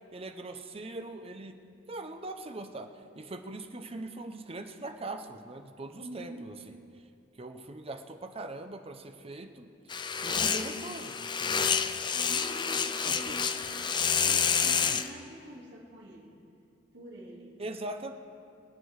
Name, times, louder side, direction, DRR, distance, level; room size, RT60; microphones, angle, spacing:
voice 1, 0.1-1.6 1.9-2.9 3.2-6.8 7.4-9.7 10.2-11.7 13.0-13.4 17.6-18.1, right 2 dB, 30° right, 7 dB, 0.8 m, -41 dB
voice 2, 6.0-6.5 10.2-11.1 11.4-11.8 12.1-16.3 16.9-17.6, equal, 65° right, -7 dB, 3.2 m, -47 dB
sound 1, 9.9-15.1, left 6 dB, 25° left, 0.5 m, -29 dB
24.5 x 8.5 x 4.8 m, 2.5 s
head